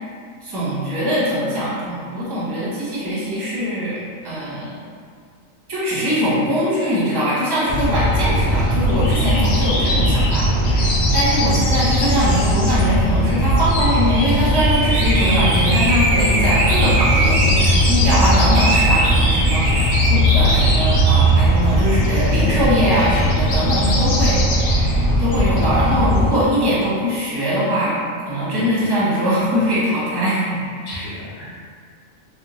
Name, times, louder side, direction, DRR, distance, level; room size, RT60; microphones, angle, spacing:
voice 1, 0.4-4.8 5.7-28.0 28.2-31.1, equal, 25° right, -9 dB, 0.6 m, -22 dB
sound 1, 7.7-26.3, equal, 65° left, 0.5 m, -18 dB
sound 2, 14.1-14.3 14.5-17.9 18.5-21.2, right 2 dB, 65° right, 0.5 m, -22 dB
voice 2, 30.8-31.6, left 1 dB, 85° left, -7 dB, 1.1 m, -35 dB
2.9 x 2.3 x 2.8 m, 2.1 s
omnidirectional pair, 1.4 m